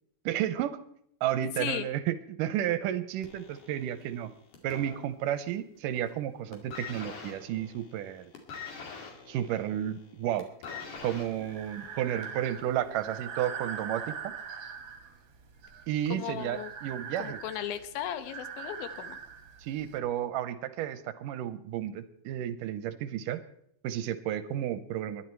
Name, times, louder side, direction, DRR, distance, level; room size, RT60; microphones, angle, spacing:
voice 1, 0.3-0.8 1.2-4.3 4.6-8.3 9.3-10.5 11.0-14.3 15.9-17.4 19.6-23.4 23.8-25.3, right 11 dB, 80° right, 13 dB, 2.2 m, -32 dB
voice 2, 1.6-1.9 16.1-16.7 17.2-19.2, left 11 dB, 90° left, 11 dB, 2.9 m, -36 dB
sound 1, 3.2-5.6 5.9-6.2 6.5-12.5 13.3-13.4, left 5 dB, 65° left, 3.8 m, -45 dB
Breathing, 11.0-20.0, right 7 dB, 50° right, 1.6 m, -42 dB
20.5 x 11.0 x 4.5 m, 0.70 s
omnidirectional pair, 4.1 m